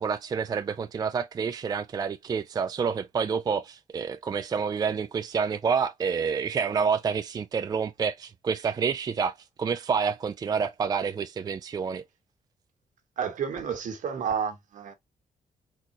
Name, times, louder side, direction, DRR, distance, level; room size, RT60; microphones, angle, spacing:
voice 1, 0.0-12.0, right 6 dB, 30° right, 0.3 m, -28 dB
voice 2, 13.2-14.9, right 7 dB, 70° right, 1.4 m, -30 dB
4.3 x 3.7 x 2.8 m
wide cardioid pair, 145°, 14 cm